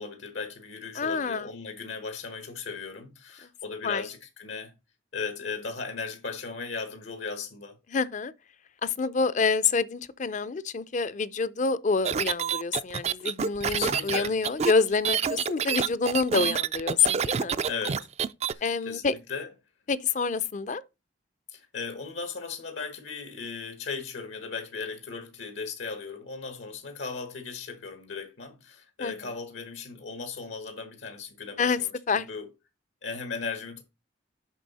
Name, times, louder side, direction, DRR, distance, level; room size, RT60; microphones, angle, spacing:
voice 1, 0.0-4.7 5.1-7.8 13.7-14.4 17.7-18.1 18.5-19.5 21.5-31.9 32.1-32.4 33.0-33.8, left 5 dB, 75° left, 1.2 m, -37 dB
voice 2, 1.0-1.5 3.8-4.1 7.9-8.3 8.8-17.6 18.6-19.1 19.9-20.8 29.0-29.3 31.6-31.8 32.1-32.3, left 4 dB, 40° left, 0.4 m, -27 dB
sound 1, 12.0-18.5, right 7 dB, 35° right, 0.3 m, -28 dB
7.4 x 5.5 x 4.1 m
head